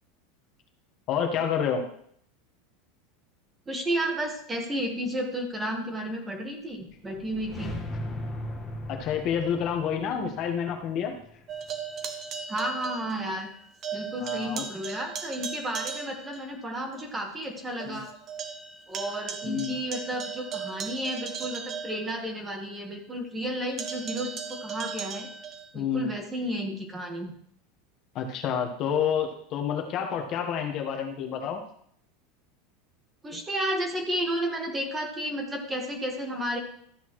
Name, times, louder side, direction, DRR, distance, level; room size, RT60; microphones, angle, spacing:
voice 1, 1.1-1.8 8.9-11.2 14.2-14.6 17.9-18.0 19.4-19.8 25.7-26.1 28.1-31.6 33.3-33.4, left 7 dB, 35° left, 4 dB, 1.3 m, -29 dB
voice 2, 3.7-7.7 12.5-13.5 13.9-18.1 18.9-25.3 25.7-27.3 33.2-36.6, right 1 dB, 10° right, 3 dB, 1.4 m, -32 dB
sound 1, 6.8-11.9, left 1 dB, 15° left, 1.5 m, -39 dB
sound 2, 11.5-13.6 13.8-16.5 16.9-17.0 17.4-17.5 17.8-22.6 23.8-25.7, right 6 dB, 30° right, 1.1 m, -37 dB
13.0 x 8.1 x 3.1 m, 0.66 s
supercardioid pair, 160°, 0 cm